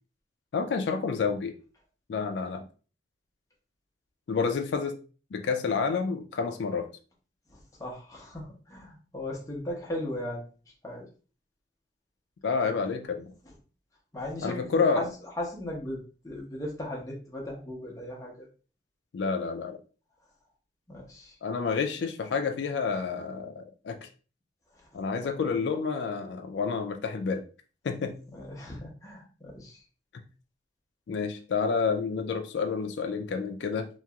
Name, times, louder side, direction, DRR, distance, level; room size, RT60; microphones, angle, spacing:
voice 1, 0.5-1.5 2.1-2.6 4.3-5.0 5.3-6.9 12.4-13.3 14.4-15.1 19.1-19.8 21.4-24.1 24.9-27.4 27.8-28.2 31.1-33.9, left 5 dB, 80° left, 6 dB, 0.4 m, -29 dB
voice 2, 7.5-10.4 10.8-11.0 14.1-18.5 20.9-21.4 24.9-25.5 28.3-29.8, left 1 dB, 20° left, -2 dB, 0.7 m, -38 dB
2.9 x 2.8 x 2.3 m, 0.37 s
head